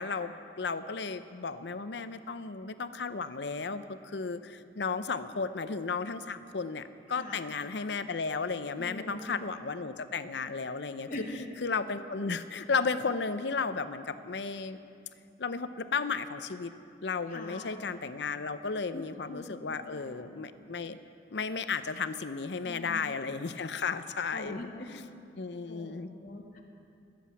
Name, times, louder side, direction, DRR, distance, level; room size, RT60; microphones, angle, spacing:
voice 1, 0.0-11.1 11.6-14.8 15.4-16.7 17.0-21.0 21.3-24.6 24.9-25.0 25.4-26.2, left 4 dB, 75° left, 12 dB, 0.6 m, -34 dB
voice 2, 7.1-7.5 8.8-9.5 11.1-11.6 17.3-17.8 18.9-20.1 22.6-23.1 24.3-25.0 25.7-26.6, left 1 dB, 45° left, 0 dB, 1.9 m, -43 dB
20.5 x 7.7 x 8.4 m, 2.5 s
head